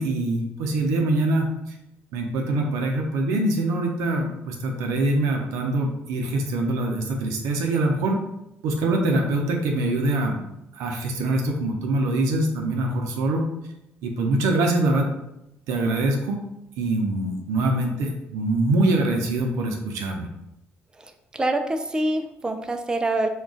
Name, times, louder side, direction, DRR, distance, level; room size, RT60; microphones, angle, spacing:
voice 1, 0.0-1.5 2.1-8.2 8.6-10.4 10.7-13.5 14.0-15.1 15.7-16.4 16.8-20.3, right 2 dB, 90° right, 2 dB, 0.5 m, -24 dB
voice 2, 21.0-23.3, right 2 dB, 15° right, 6 dB, 0.3 m, -26 dB
2.4 x 2.2 x 3.6 m, 0.86 s
supercardioid pair, 70°, 5 cm